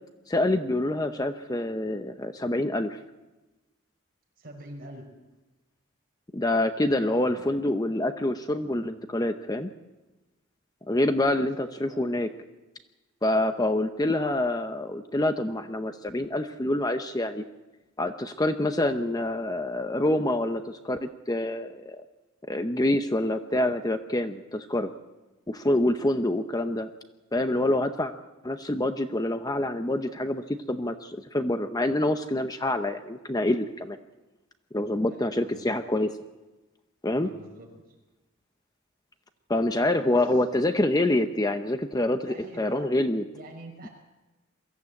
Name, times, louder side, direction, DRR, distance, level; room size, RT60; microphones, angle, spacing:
voice 1, 0.3-3.0 6.3-9.7 10.9-12.3 13.2-17.4 18.0-22.0 22.5-24.9 25.5-26.9 27.3-28.1 28.4-34.0 34.7-36.1 37.0-37.3 39.5-43.2, left 1 dB, 20° left, 8 dB, 0.7 m, -26 dB
voice 2, 4.4-5.0 6.9-7.4 11.4-11.5 11.9-12.1 35.1-35.7 37.2-37.7 40.0-40.2 42.3-42.9 43.3-43.9, right 1 dB, 45° right, 1 dB, 5.6 m, -45 dB
23.0 x 15.0 x 8.3 m, 1.1 s
head